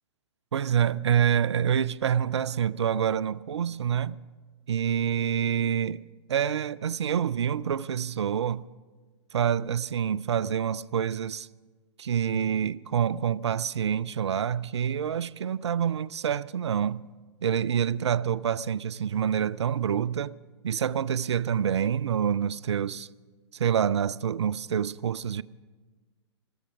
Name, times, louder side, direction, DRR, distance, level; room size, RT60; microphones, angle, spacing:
voice 1, 0.5-4.2 4.7-6.0 6.3-8.6 9.3-11.5 12.0-17.1 17.4-20.4 20.6-23.1 23.5-25.4, right 8 dB, 70° right, 0.4 m, -27 dB
13.5 x 13.5 x 5.9 m
figure-of-eight pair, 110°, 15 cm